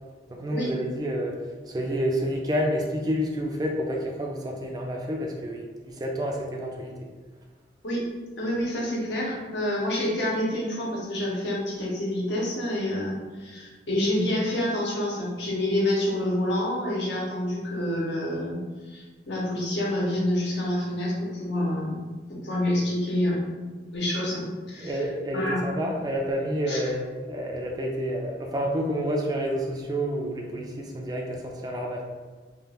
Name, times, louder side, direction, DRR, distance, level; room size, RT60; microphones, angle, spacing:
voice 1, 0.3-1.4 1.7-6.9 24.8-32.0, equal, 20° right, 0 dB, 0.3 m, -29 dB
voice 2, 8.4-18.6 18.9-23.5 23.9-25.1 25.3-25.6 26.7-26.9, left 1 dB, 70° left, -4 dB, 0.9 m, -28 dB
2.9 x 2.4 x 3.4 m, 1.4 s
head